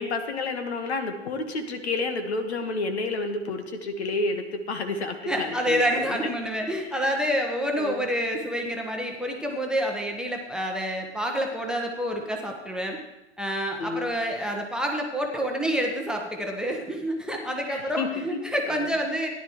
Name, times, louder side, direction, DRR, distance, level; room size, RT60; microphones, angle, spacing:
voice 1, 0.0-6.3 7.8-8.0 13.8-14.1 17.7-18.2 18.7-18.8, left 3 dB, 65° left, 6 dB, 1.5 m, -30 dB
voice 2, 5.3-13.0 13.4-19.3, equal, ahead, 1 dB, 1.0 m, -28 dB
15.0 x 10.5 x 3.1 m, 0.99 s
figure-of-eight pair, 105°, 35 cm